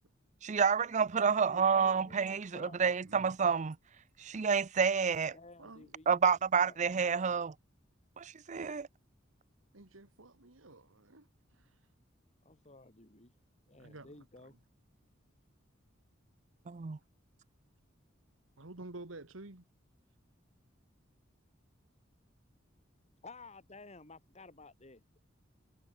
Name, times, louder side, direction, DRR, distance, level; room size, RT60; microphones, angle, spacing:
voice 1, 0.4-3.8 4.2-5.3 6.1-7.5 8.2-8.9 16.7-17.0, right 6 dB, 40° right, 0.5 m, -29 dB
voice 2, 1.2-3.0 5.3-7.4 12.4-13.4 13.7-14.6 23.2-25.0, left 3 dB, 35° left, 2.8 m, -54 dB
voice 3, 5.6-5.9 9.7-11.8 13.8-14.1 18.6-19.6, right 2 dB, 90° right, 2.0 m, -50 dB
head